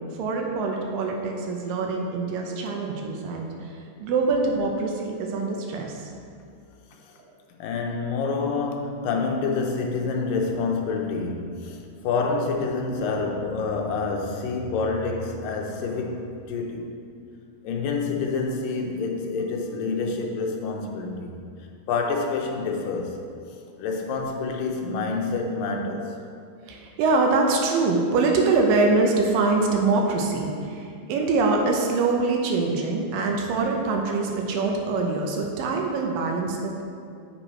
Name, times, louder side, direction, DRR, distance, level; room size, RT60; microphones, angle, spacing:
voice 1, 0.0-3.7 4.0-5.9 26.7-36.8, right 3 dB, 80° right, 1 dB, 2.3 m, -24 dB
voice 2, 7.6-11.8 12.0-16.9 17.6-21.3 21.9-23.2 23.8-26.2, left 4 dB, 80° left, 2 dB, 2.3 m, -27 dB
7.8 x 4.3 x 4.6 m, 2.4 s
omnidirectional pair, 4.2 m